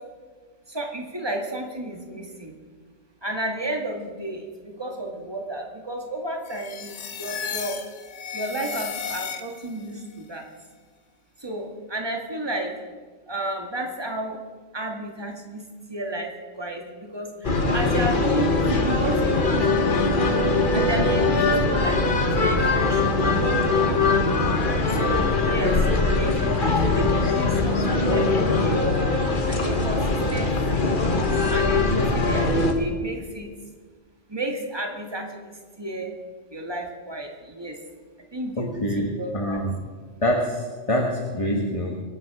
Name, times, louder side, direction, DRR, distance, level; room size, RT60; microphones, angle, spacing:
voice 1, 0.7-2.5 3.2-7.8 8.3-10.4 11.4-12.7 13.3-14.4 14.7-15.6 15.9-20.1 20.7-22.1 22.4-24.0 24.9-28.8 29.5-30.9 31.5-33.5 34.3-36.1 36.5-37.8 38.3-38.8 39.2-39.6, right 1 dB, 20° right, 2 dB, 1.9 m, -32 dB
sound 1, 6.5-9.8, left 6 dB, 75° left, 1.4 m, -34 dB
sound 2, 17.4-32.7, left 3 dB, 45° left, 1.4 m, -21 dB
voice 2, 38.6-39.7 40.2-42.0, equal, 25° left, 1 dB, 1.4 m, -25 dB
23.5 x 9.4 x 4.8 m, 1.5 s
omnidirectional pair, 1.3 m